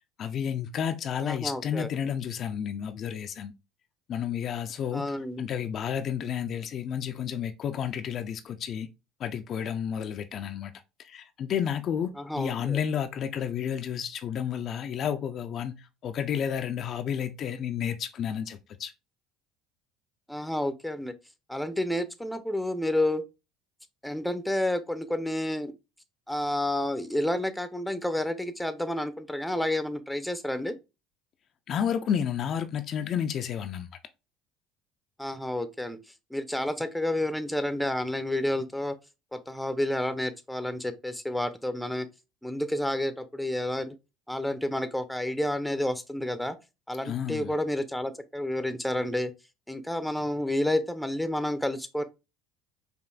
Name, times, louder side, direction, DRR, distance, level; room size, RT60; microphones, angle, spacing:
voice 1, 0.2-3.5 4.1-5.1 5.4-8.9 9.2-10.7 11.0-18.9 31.7-33.9 47.0-47.5, left 8 dB, 50° left, 0.4 m, -31 dB
voice 2, 1.2-1.9 4.9-5.5 12.2-12.8 20.3-21.1 21.5-23.2 24.0-25.7 26.3-30.8 35.2-36.0 36.3-39.0 39.3-42.1 42.4-44.0 44.3-46.6 46.9-49.3 49.7-52.0, left 1 dB, 5° left, 0.6 m, -30 dB
5.0 x 2.5 x 2.3 m
hypercardioid pair, 70°, 0 cm